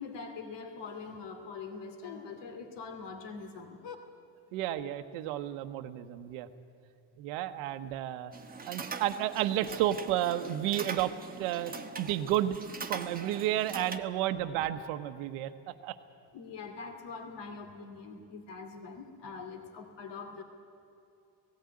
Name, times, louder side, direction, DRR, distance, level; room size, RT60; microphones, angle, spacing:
voice 1, 0.0-4.0 16.3-20.4, left 4 dB, 55° left, 5 dB, 2.6 m, -43 dB
voice 2, 4.5-6.5 7.2-8.3 8.7-12.6 12.9-15.5 15.8-16.0, right 12 dB, 85° right, 9 dB, 1.1 m, -32 dB
sound 1, 8.3-14.0, right 5 dB, 15° right, 1.3 m, -42 dB
17.0 x 16.5 x 9.6 m, 2.7 s
cardioid pair, 105°, 49 cm